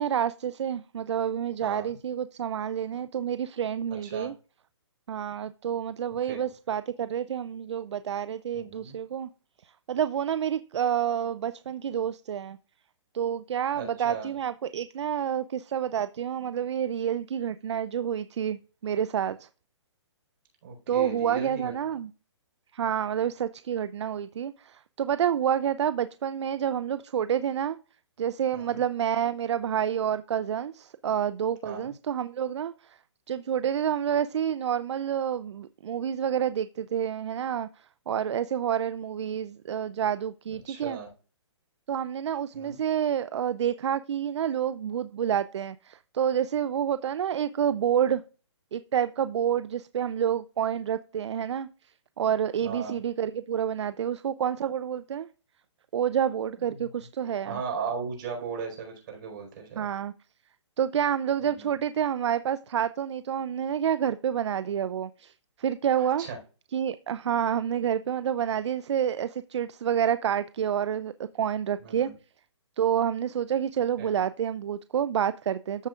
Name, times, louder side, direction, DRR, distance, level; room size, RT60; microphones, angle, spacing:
voice 1, 0.0-4.3 5.1-9.3 9.6-12.6 13.1-19.5 20.9-22.1 22.7-27.8 28.2-33.0 33.3-41.0 41.9-48.2 48.7-51.7 52.2-55.3 55.9-57.6 59.8-60.1 60.8-66.3 66.7-72.1 72.8-75.9, right 9 dB, 70° right, 0.5 m, -28 dB
voice 2, 1.6-2.0 4.0-4.3 6.3-6.4 8.5-9.0 13.7-14.4 20.6-21.9 28.5-28.8 31.6-31.9 40.7-41.1 42.5-42.8 52.6-53.0 56.8-56.9 57.5-59.9 61.4-61.7 66.0-66.4 71.8-72.1 74.0-74.2, right 5 dB, 45° right, 4.6 m, -37 dB
14.0 x 5.0 x 2.4 m
hypercardioid pair, 150°, 15 cm